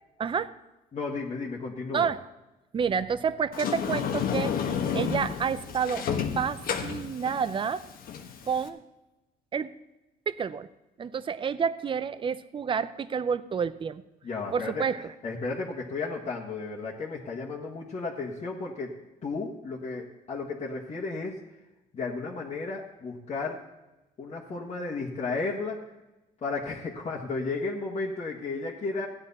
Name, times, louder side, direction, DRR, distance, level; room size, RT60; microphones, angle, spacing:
voice 1, 0.2-0.5 1.9-2.2 2.7-4.5 4.9-6.0 6.3-7.8 8.5-8.8 9.5-9.7 10.3-10.7 11.0-14.0 14.5-15.1, right 6 dB, 30° right, 15 dB, 0.6 m, -29 dB
voice 2, 0.9-2.1 14.2-14.9 15.2-18.9 19.2-21.4 21.9-23.6 24.2-25.8 26.4-29.1, left 3 dB, 40° left, -5 dB, 1.7 m, -33 dB
Sliding door, 3.5-8.7, left 7 dB, 60° left, 1.3 m, -31 dB
15.0 x 9.7 x 4.2 m, 1.0 s
cardioid pair, 110°, 17 cm